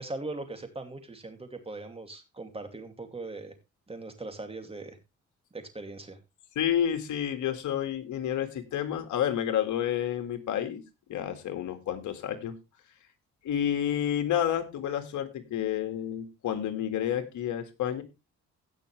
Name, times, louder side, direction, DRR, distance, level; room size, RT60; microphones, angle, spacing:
voice 1, 0.0-3.5 3.9-5.0 5.5-6.2, right 2 dB, 20° right, 6 dB, 2.7 m, -40 dB
voice 2, 6.6-10.8 11.1-12.6 13.4-18.0, left 10 dB, 75° left, 7 dB, 2.1 m, -30 dB
17.0 x 6.2 x 3.3 m, 0.25 s
cardioid pair, 90°, 30 cm